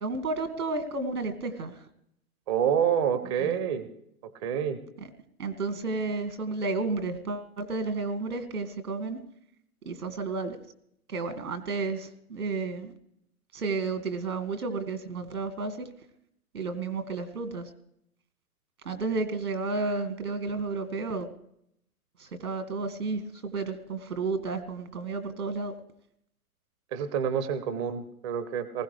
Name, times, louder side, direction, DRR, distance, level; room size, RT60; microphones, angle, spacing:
voice 1, 0.0-1.8 3.2-3.6 5.0-5.1 5.4-9.2 9.9-10.6 11.1-12.9 13.5-15.9 16.5-17.7 18.9-21.3 22.2-25.7, right 3 dB, 80° right, 9 dB, 2.0 m, -32 dB
voice 2, 2.5-3.9 4.4-4.8 26.9-28.8, right 8 dB, 20° right, 13 dB, 0.5 m, -27 dB
19.5 x 16.0 x 3.3 m, 0.74 s
hypercardioid pair, 130°, 44 cm